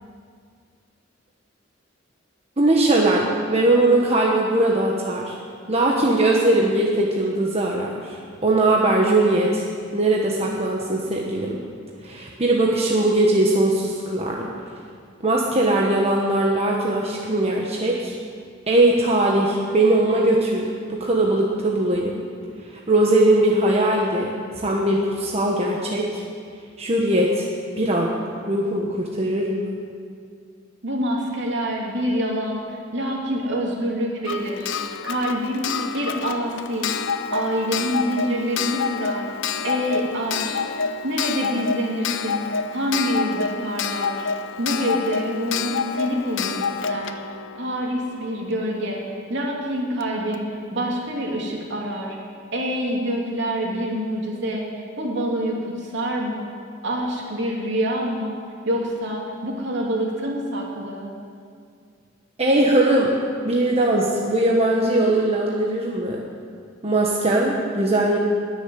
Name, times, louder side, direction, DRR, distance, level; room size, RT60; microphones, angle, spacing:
voice 1, 2.6-5.3 5.7-9.6 9.9-11.6 12.0-14.5 15.2-18.1 18.7-22.2 22.9-26.2 26.8-27.4 27.8-28.1 28.5-29.7 62.4-63.2 63.4-66.2 66.8-68.2, right 1 dB, 35° right, -2 dB, 1.3 m, -20 dB
voice 2, 30.8-34.7 35.0-35.7 35.9-36.9 37.3-39.3 39.6-40.6 41.0-44.3 44.6-46.5 46.9-47.2 47.6-49.0 49.3-52.2 52.5-54.7 55.0-56.5 56.8-58.4 58.7-61.2, equal, 65° right, -1 dB, 2.9 m, -26 dB
Clock, 34.2-48.8 50.0-50.1 50.3-50.4, left 6 dB, 65° left, 0.6 m, -28 dB
20.5 x 7.1 x 7.8 m, 2.2 s
head